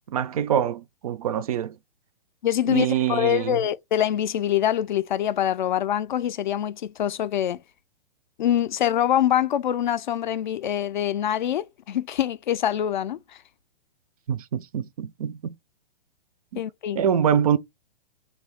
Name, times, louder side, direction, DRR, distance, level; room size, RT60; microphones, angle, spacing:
voice 1, 0.1-1.8 2.7-3.6 14.3-15.4 16.5-16.6 17.0-17.6, right 9 dB, 40° right, 0.4 m, -24 dB
voice 2, 2.4-7.6 8.4-13.4 16.6-17.0, left 11 dB, 55° left, 0.4 m, -24 dB
3.2 x 2.5 x 3.5 m
figure-of-eight pair, 120°, 29 cm